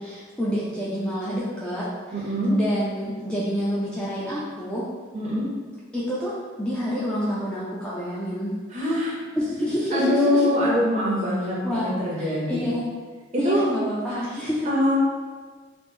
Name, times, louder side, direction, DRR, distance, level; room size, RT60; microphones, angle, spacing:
voice 1, 0.0-1.9 2.1-4.9 5.9-8.6 9.4-10.5 11.6-12.9 13.4-14.7, equal, 5° left, -8 dB, 0.3 m, -28 dB
voice 2, 2.1-2.5 5.1-5.5 8.7-9.2 9.9-12.6 13.4-13.7 14.7-15.0, left 1 dB, 35° right, -5 dB, 0.7 m, -23 dB
3.1 x 2.0 x 3.4 m, 1.5 s
head